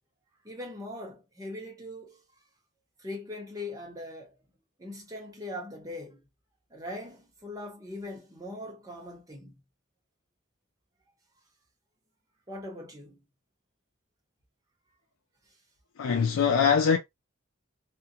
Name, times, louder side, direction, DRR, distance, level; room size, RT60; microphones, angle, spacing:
voice 1, 0.4-2.2 3.0-4.4 4.8-6.2 6.7-9.6 12.5-13.2, left 1 dB, 15° right, 0.8 m, -41 dB
voice 2, 16.0-17.0, left 6 dB, 75° left, 0.4 m, -22 dB
2.5 x 2.1 x 2.7 m
head